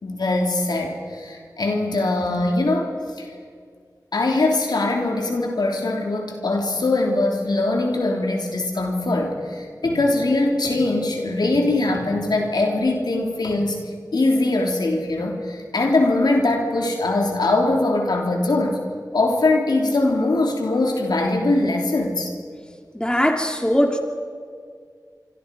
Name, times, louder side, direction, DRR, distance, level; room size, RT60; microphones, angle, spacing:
voice 1, 0.0-3.3 4.1-18.8 19.1-22.3, left 2 dB, 90° left, 1 dB, 3.3 m, -22 dB
voice 2, 22.9-24.0, equal, 10° left, 3 dB, 2.6 m, -20 dB
26.0 x 25.5 x 5.4 m, 2.1 s
wide cardioid pair, 50°, 7 cm